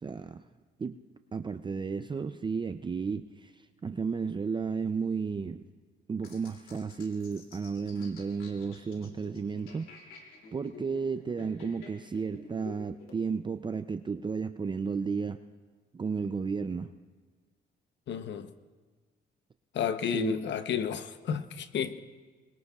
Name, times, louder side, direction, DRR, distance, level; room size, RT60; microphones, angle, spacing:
voice 1, 0.0-0.4 0.8-1.0 1.3-5.6 6.1-15.4 15.9-16.9 20.1-20.4, right 5 dB, 25° right, 0.5 m, -33 dB
sound 1, 6.2-13.2, left 4 dB, 85° left, 2.8 m, -51 dB
voice 2, 18.1-18.5 19.7-22.0, left 8 dB, 65° left, 0.9 m, -31 dB
26.0 x 21.5 x 2.4 m
cardioid pair, 90°, 20 cm